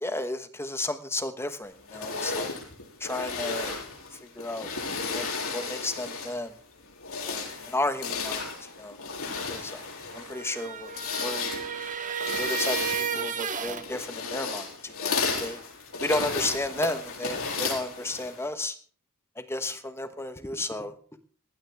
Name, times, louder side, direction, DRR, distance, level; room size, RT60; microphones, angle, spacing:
voice 1, 0.0-2.6 3.0-3.7 4.4-4.7 5.1-5.3 5.5-6.5 7.3-8.5 8.8-9.0 9.5-9.8 10.1-10.9 11.2-11.5 12.4-15.6 16.0-18.8 19.4-21.0, left 2 dB, 10° left, 9 dB, 1.2 m, -33 dB
sound 1, 1.9-6.5 6.9-18.5, left 4 dB, 65° left, 7.2 m, -34 dB
sound 2, 10.2-13.9, right 6 dB, 35° right, 1.8 m, -32 dB
19.5 x 16.0 x 3.5 m, 0.43 s
head